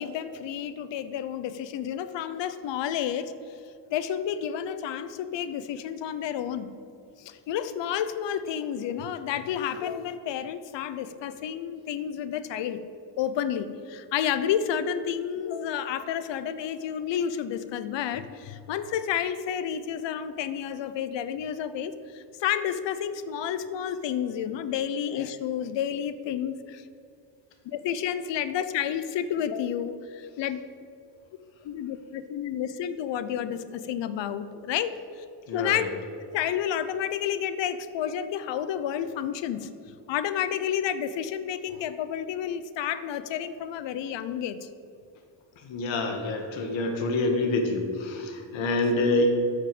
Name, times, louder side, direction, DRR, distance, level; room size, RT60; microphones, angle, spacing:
voice 1, 0.0-3.3 3.9-6.7 7.2-12.8 13.2-26.8 27.6-30.6 31.6-34.9 35.2-35.3 35.5-35.9 36.3-39.7 40.1-44.7 48.9-49.0, left 9 dB, 70° left, 13 dB, 0.7 m, -30 dB
voice 2, 35.5-35.9 45.6-49.3, left 2 dB, 85° left, 4 dB, 1.7 m, -26 dB
8.8 x 6.4 x 7.7 m, 2.5 s
cardioid pair, 115°, 45 cm